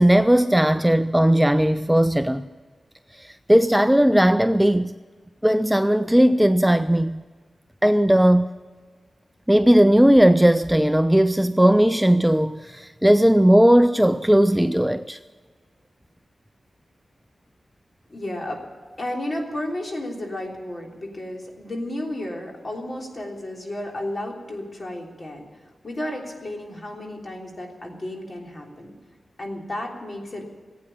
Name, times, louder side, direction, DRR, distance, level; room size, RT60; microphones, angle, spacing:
voice 1, 0.0-2.5 3.1-4.9 5.4-7.2 7.8-8.5 9.5-15.2, equal, 5° right, 0.4 m, -17 dB
voice 2, 18.1-18.6 19.0-25.4 25.8-28.9 29.4-30.4, left 1 dB, 40° left, 3.3 m, -32 dB
16.0 x 8.7 x 9.9 m
wide cardioid pair, 95°, 0 cm